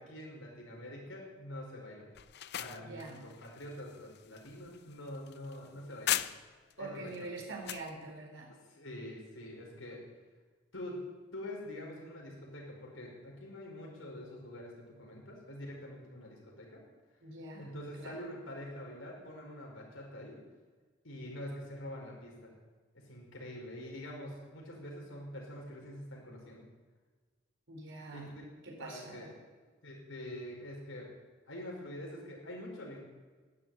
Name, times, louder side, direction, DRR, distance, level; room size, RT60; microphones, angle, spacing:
voice 1, 0.0-2.1 2.6-6.2 6.8-7.1 8.7-10.0 10.7-11.0 11.3-16.8 17.6-20.4 21.0-22.5 22.9-26.6 28.1-28.3 28.8-29.3 29.8-31.1 31.5-33.0, left 1 dB, 75° left, -1 dB, 5.0 m, -45 dB
sound 1, 2.1-6.7 7.1-7.9, left 12 dB, 55° left, 0.5 m, -39 dB
voice 2, 2.8-3.2 6.8-8.5 17.2-18.2 27.7-28.3 28.6-29.3, right 2 dB, 65° right, -1 dB, 4.3 m, -45 dB
12.0 x 11.0 x 9.0 m, 1.4 s
head